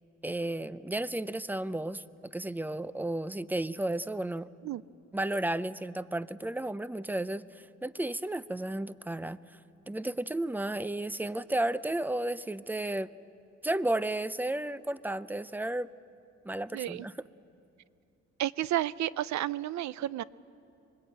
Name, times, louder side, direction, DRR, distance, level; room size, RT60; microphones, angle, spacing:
voice 1, 0.2-4.5 5.1-9.4 9.9-13.1 13.6-15.9 16.4-17.3, right 1 dB, 5° right, 16 dB, 0.5 m, -33 dB
voice 2, 16.7-17.1 18.4-20.2, right 13 dB, 70° right, 19 dB, 0.6 m, -31 dB
25.0 x 21.5 x 8.8 m, 2.6 s
cardioid pair, 90°, 30 cm